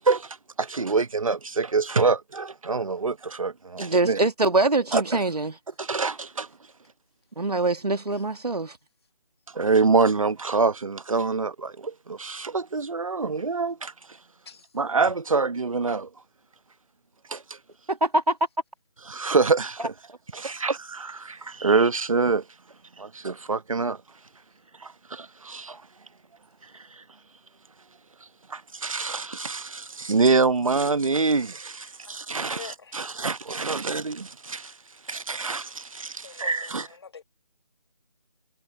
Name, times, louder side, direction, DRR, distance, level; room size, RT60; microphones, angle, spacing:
voice 1, 0.0-4.2 4.9-5.2 5.8-6.5 9.5-13.9 14.7-16.1 17.3-17.6 19.1-19.9 20.3-22.4 23.0-24.0 24.8-25.8 26.6-27.0 28.5-34.7 35.1-36.9, right 4 dB, 55° right, 1.1 m, -26 dB
voice 2, 3.8-5.6 7.4-8.8 17.9-18.4 19.8-19.9, right 2 dB, 75° right, 2.3 m, -24 dB
voice 3, 32.4-33.1 36.2-37.2, left 5 dB, 40° left, 2.2 m, -45 dB
figure-of-eight pair, 160°, 20 cm